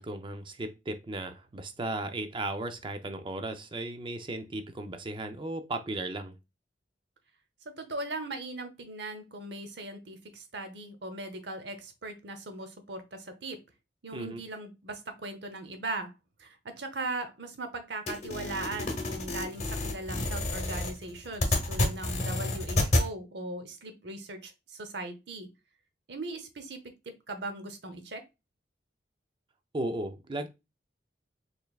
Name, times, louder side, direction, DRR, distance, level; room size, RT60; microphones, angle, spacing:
voice 1, 0.0-6.4 14.1-14.4 29.7-30.5, right 2 dB, 25° right, 0.5 m, -36 dB
voice 2, 7.7-13.6 14.0-16.1 16.4-25.5 26.1-26.8 27.1-28.2, right 2 dB, 65° right, 0.8 m, -39 dB
sound 1, 18.1-23.1, left 1 dB, 40° left, 0.9 m, -29 dB
4.3 x 3.4 x 2.4 m
head